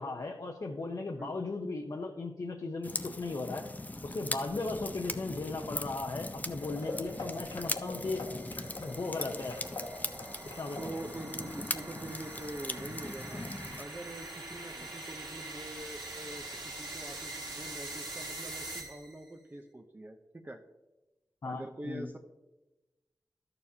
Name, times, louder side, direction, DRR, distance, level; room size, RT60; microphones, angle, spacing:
voice 1, 0.0-3.7 4.0-8.2 8.8-9.6 10.4-11.0 14.8-14.9 21.4-22.1, left 3 dB, 60° left, 1 dB, 0.8 m, -37 dB
sound 1, 2.8-13.8, left 2 dB, 25° left, 0.5 m, -40 dB
sound 2, 4.7-19.3, right 2 dB, 80° right, 2.0 m, -45 dB
sound 3, 6.6-13.2 13.5-13.8 14.2-14.3 14.8-14.9, left 2 dB, 85° left, 1.6 m, -45 dB
voice 2, 10.8-13.4 13.8-20.2 20.4-20.6 21.4-22.2, right 1 dB, 25° right, 3 dB, 0.7 m, -44 dB
12.5 x 6.8 x 2.8 m, 1.0 s
wide cardioid pair, 85°, 7 cm